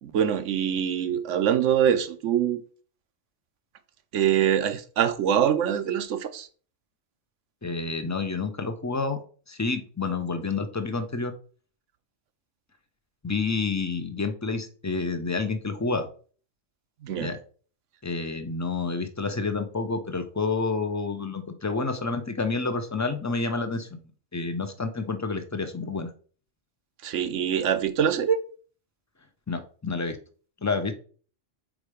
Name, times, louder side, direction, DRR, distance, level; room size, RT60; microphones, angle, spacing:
voice 1, 0.0-2.6 4.1-6.5 17.0-17.3 27.0-28.4, right 9 dB, 90° right, 1.1 m, -24 dB
voice 2, 7.6-9.2 9.5-11.3 13.2-16.1 17.2-17.4 18.0-24.0 24.3-26.1 29.5-30.2 30.6-30.9, left 4 dB, 20° left, 0.5 m, -29 dB
5.0 x 4.3 x 4.9 m
omnidirectional pair, 1.2 m